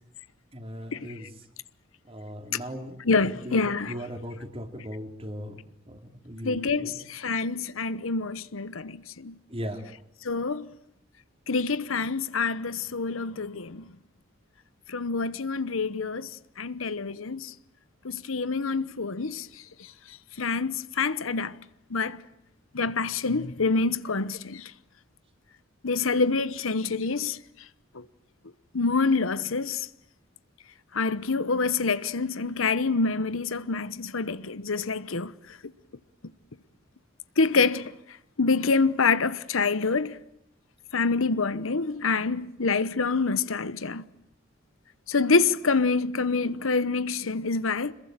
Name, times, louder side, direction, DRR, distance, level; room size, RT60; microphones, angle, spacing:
voice 1, 0.5-1.3 2.0-5.6 5.9-7.0 9.5-9.9, equal, 30° right, 2.9 m, -38 dB
voice 2, 3.0-4.0 6.4-9.4 10.2-10.7 11.5-13.9 14.9-16.3 16.6-17.5 18.0-19.5 20.4-21.6 21.9-22.2 22.7-24.7 25.8-27.4 27.9-28.0 28.7-29.9 30.9-35.3 37.4-37.9 38.4-40.2 40.9-44.0 45.1-47.9, left 4 dB, 85° left, 1.0 m, -26 dB
26.5 x 22.0 x 8.9 m
head